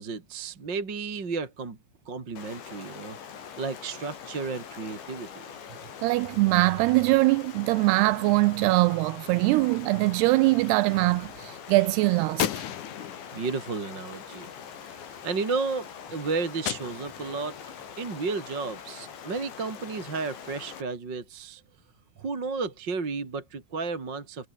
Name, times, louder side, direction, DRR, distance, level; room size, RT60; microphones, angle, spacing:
voice 1, 0.0-1.8 2.0-3.2 3.6-5.5 13.3-14.5 14.9-17.6 18.0-21.6 22.2-24.5, right 4 dB, 25° right, 3.2 m, -33 dB
Stream, 2.4-20.8, left 7 dB, 80° left, 6.2 m, -43 dB
voice 2, 6.0-12.5, right 21 dB, 85° right, 2.4 m, -22 dB
Gunshot gunfire, 9.4-10.4 12.4-14.8 16.7-17.6, left 11 dB, 55° left, 2.4 m, -36 dB
omnidirectional pair, 5.1 m